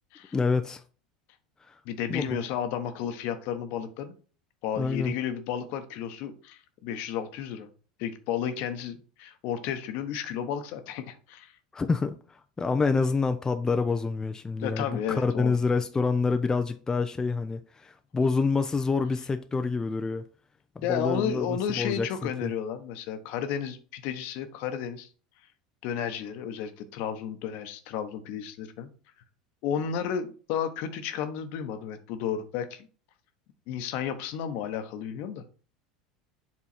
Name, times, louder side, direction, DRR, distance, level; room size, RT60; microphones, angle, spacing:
voice 1, 0.3-0.8 1.7-1.8 2.1-2.4 4.8-5.2 11.7-20.2 20.9-22.5, left 4 dB, 15° left, 0.5 m, -27 dB
voice 2, 1.8-4.1 4.6-7.7 8.0-11.5 14.6-15.6 20.8-25.1 25.8-28.9 29.6-32.9 33.7-35.4, left 8 dB, 55° left, 1.0 m, -32 dB
7.4 x 3.7 x 4.2 m
hypercardioid pair, 80°, 3 cm